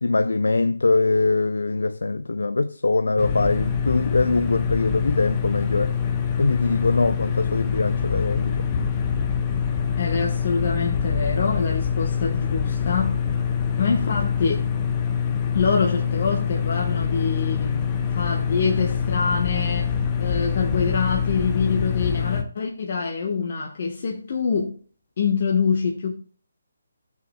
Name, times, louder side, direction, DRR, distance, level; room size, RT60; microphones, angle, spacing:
voice 1, 0.0-5.9 6.4-8.6, left 3 dB, 70° left, 0.4 m, -22 dB
sound 1, 3.2-22.4, left 7 dB, 25° left, 1.3 m, -25 dB
voice 2, 10.0-13.2 13.8-14.7 15.5-17.9 18.1-24.8 25.2-26.1, left 5 dB, 45° left, 1.3 m, -25 dB
15.5 x 7.0 x 2.3 m
figure-of-eight pair, 145°, 0 cm